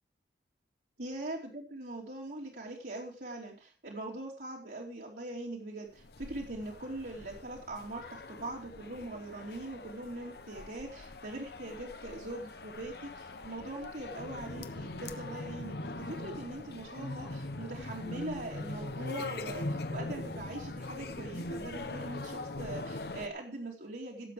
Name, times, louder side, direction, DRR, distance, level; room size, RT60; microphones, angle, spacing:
voice 1, 1.0-24.3, right 2 dB, 65° right, -4 dB, 2.9 m, -42 dB
sound 1, 5.9-23.3, left 2 dB, 65° left, 1.1 m, -41 dB
16.5 x 7.8 x 4.8 m, 0.36 s
head